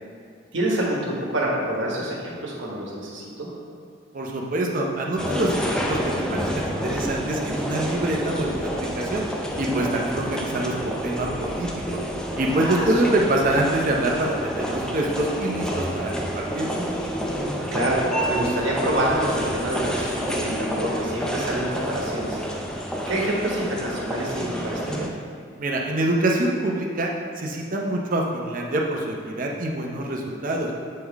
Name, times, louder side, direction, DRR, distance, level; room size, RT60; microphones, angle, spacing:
voice 1, 0.5-3.5 12.6-12.9 17.7-18.0 18.2-22.4 23.1-25.1, right 1 dB, 75° right, -4 dB, 1.3 m, -27 dB
voice 2, 4.1-6.0 6.3-9.3 9.6-12.0 12.4-16.7 25.6-27.1 27.4-30.7, right 1 dB, 45° right, 0 dB, 0.7 m, -25 dB
sound 1, 5.2-25.1, equal, 5° left, 0.4 m, -29 dB
7.6 x 3.7 x 3.5 m, 2.3 s
head